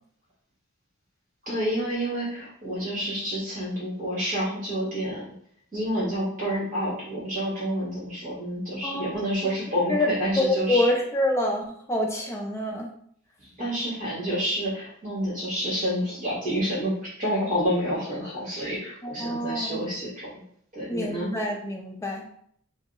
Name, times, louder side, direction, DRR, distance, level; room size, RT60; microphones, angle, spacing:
voice 1, 1.4-5.3 5.7-10.9 13.4-16.9 17.2-20.3 20.7-21.3, equal, 35° right, -8 dB, 1.3 m, -29 dB
voice 2, 8.8-9.1 9.9-10.1 10.4-12.9 19.0-19.8 20.9-22.2, left 1 dB, 15° left, 1 dB, 0.3 m, -26 dB
2.7 x 2.0 x 3.5 m, 0.65 s
head